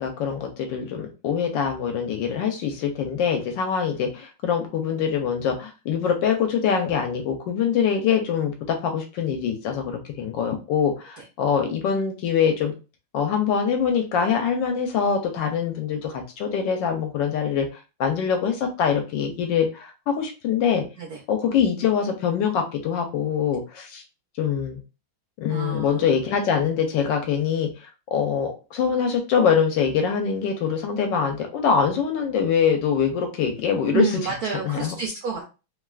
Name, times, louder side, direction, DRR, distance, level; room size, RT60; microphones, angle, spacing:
voice 1, 0.0-12.7 13.1-17.7 18.0-20.8 21.3-24.0 24.4-24.8 25.4-27.7 28.1-34.1 34.6-34.9, left 7 dB, 75° left, 4 dB, 1.2 m, -24 dB
voice 2, 25.5-26.0 33.9-35.4, right 7 dB, 80° right, 0 dB, 0.8 m, -29 dB
3.3 x 2.3 x 2.3 m, 0.30 s
omnidirectional pair, 2.3 m